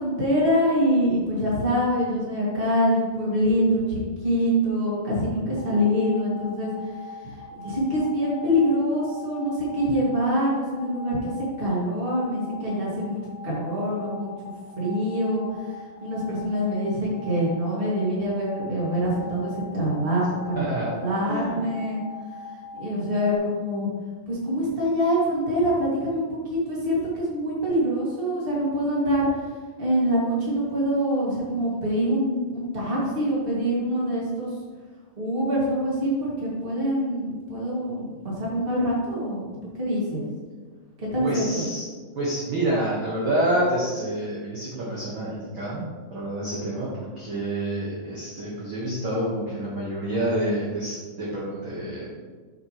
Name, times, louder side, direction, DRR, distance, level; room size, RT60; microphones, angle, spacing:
voice 1, 0.0-6.9 7.6-11.3 11.6-14.3 14.7-15.4 15.7-22.0 22.8-23.9 24.3-29.3 29.8-34.5 35.2-39.5 39.7-40.2 41.0-41.7, equal, 20° right, -6 dB, 1.7 m, -25 dB
sound 1, 5.6-23.4, left 2 dB, 85° left, 2.5 m, -42 dB
voice 2, 20.5-20.9 21.3-21.6 41.2-41.8 42.1-45.8 46.1-52.1, right 1 dB, 55° right, -6 dB, 1.5 m, -28 dB
7.9 x 6.8 x 3.1 m, 1.5 s
omnidirectional pair, 4.0 m